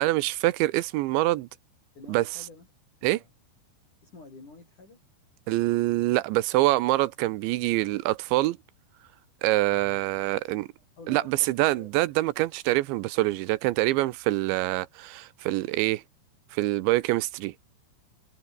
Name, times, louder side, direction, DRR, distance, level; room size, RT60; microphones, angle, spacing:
voice 1, 0.0-1.5 2.1-2.3 3.0-3.2 5.5-8.6 9.4-10.7 11.1-16.0 16.5-17.5, right 18 dB, 80° right, 2.8 m, -25 dB
voice 2, 2.0-2.7 3.0-3.3 4.0-5.0 9.8-10.0 11.0-11.4 11.8-11.9, left 3 dB, 40° left, 9.1 m, -48 dB
omnidirectional pair, 5.8 m